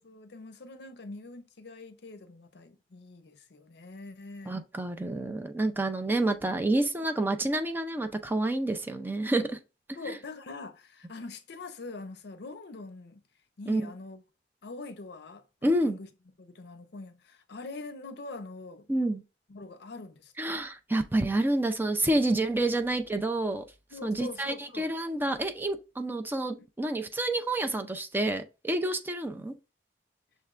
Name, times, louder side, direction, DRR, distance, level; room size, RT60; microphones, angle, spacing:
voice 1, 0.0-4.6 10.0-13.2 13.6-14.2 14.6-16.1 16.4-18.9 19.5-20.5 23.9-24.9, left 3 dB, 65° left, 0.6 m, -44 dB
voice 2, 4.5-9.6 13.7-13.8 15.6-16.0 18.9-19.2 20.4-23.6 24.0-29.5, right 1 dB, 10° right, 0.4 m, -28 dB
6.4 x 3.3 x 2.4 m
head